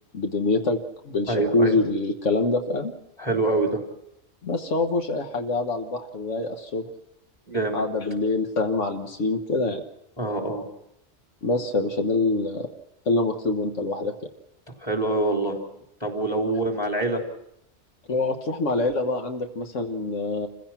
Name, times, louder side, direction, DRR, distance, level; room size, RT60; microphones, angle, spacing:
voice 1, 0.1-0.8 1.0-2.9 4.4-6.8 7.7-9.8 11.4-12.7 13.1-14.1 18.1-20.5, left 2 dB, 80° left, 4 dB, 1.7 m, -25 dB
voice 2, 1.3-1.8 3.2-3.8 7.5-7.8 10.2-10.6 14.8-15.6 16.0-17.2, right 2 dB, 20° left, 2 dB, 3.5 m, -25 dB
28.0 x 16.0 x 5.9 m, 0.80 s
omnidirectional pair, 1.2 m